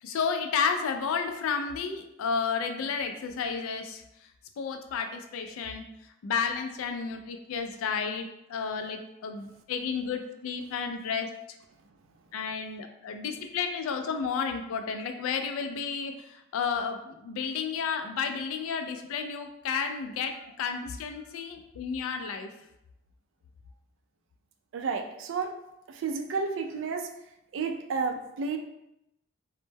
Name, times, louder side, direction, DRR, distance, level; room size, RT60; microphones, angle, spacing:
voice 1, 0.0-4.0 4.6-5.9 6.2-11.3 12.3-22.5, left 6 dB, 80° left, 7 dB, 0.3 m, -32 dB
voice 2, 24.7-25.5 25.9-27.1 27.5-28.6, right 4 dB, 65° right, 4 dB, 0.3 m, -31 dB
2.1 x 2.0 x 3.2 m, 0.85 s
head